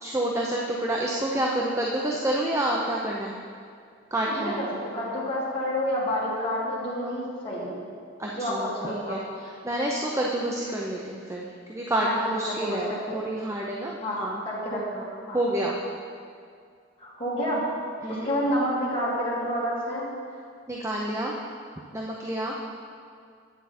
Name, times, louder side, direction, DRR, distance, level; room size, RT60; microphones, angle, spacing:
voice 1, 0.0-3.4 4.1-4.6 8.2-9.2 9.6-14.4 14.7-14.8 15.3-15.8 18.0-18.3 20.7-21.3 21.9-22.6, right 1 dB, 15° right, -2 dB, 0.6 m, -28 dB
voice 2, 4.2-7.8 8.3-9.2 12.0-12.2 12.5-13.2 14.0-14.2 14.4-15.4 17.0-17.6 18.1-20.1, equal, 30° left, -8 dB, 2.6 m, -29 dB
9.4 x 8.2 x 4.3 m, 2.2 s
head